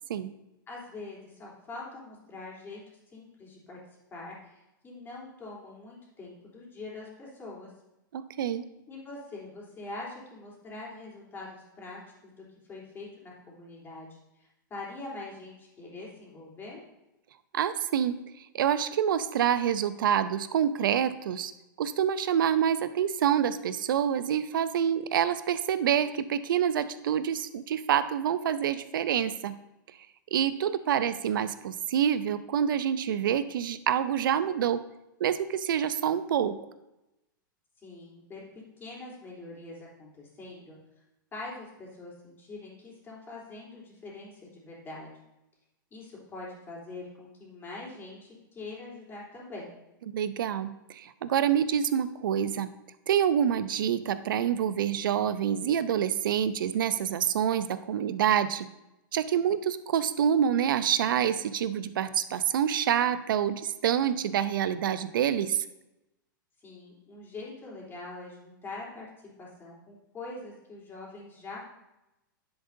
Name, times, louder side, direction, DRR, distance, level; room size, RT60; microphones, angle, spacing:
voice 1, 0.7-2.8 3.1-3.8 4.1-7.7 8.9-12.3 12.7-14.1 14.4-16.8 37.8-40.8 41.3-45.1 45.9-49.8 66.6-69.1 69.4-71.7, left 2 dB, 20° left, -5 dB, 3.4 m, -43 dB
voice 2, 8.1-8.6 17.5-18.1 18.5-21.5 21.8-29.5 30.3-34.8 35.2-36.6 50.1-52.7 53.1-58.7 59.1-65.6, right 9 dB, 75° right, 13 dB, 0.6 m, -27 dB
10.5 x 7.9 x 2.7 m, 0.93 s
hypercardioid pair, 120°, 11 cm